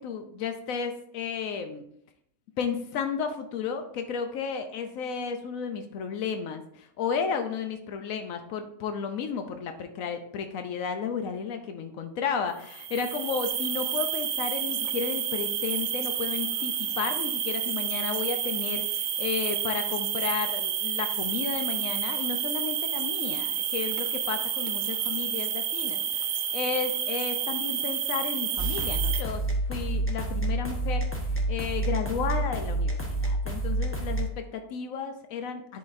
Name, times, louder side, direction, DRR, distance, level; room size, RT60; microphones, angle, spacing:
voice 1, 0.0-1.8 2.6-29.4 29.7-31.1 31.5-35.8, left 6 dB, 85° left, 7 dB, 1.1 m, -33 dB
sound 1, 12.6-29.2, right 9 dB, 90° right, 1.0 m, -30 dB
sound 2, 28.6-34.3, right 2 dB, 10° left, 1.0 m, -28 dB
10.5 x 4.0 x 2.6 m, 0.71 s
omnidirectional pair, 1.4 m